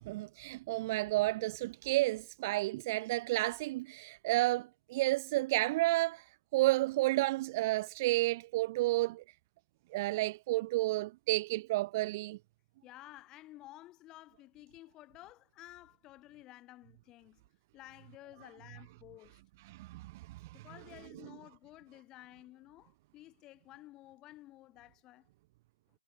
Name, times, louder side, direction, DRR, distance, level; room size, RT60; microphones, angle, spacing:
voice 1, 0.0-6.2 6.5-9.2 9.9-12.4 19.7-20.6, right 19 dB, 30° right, 0.3 m, -31 dB
voice 2, 12.8-17.4 17.7-19.4 20.5-25.3, left 16 dB, 20° left, 7.3 m, -54 dB
figure-of-eight pair, 135°, 3 cm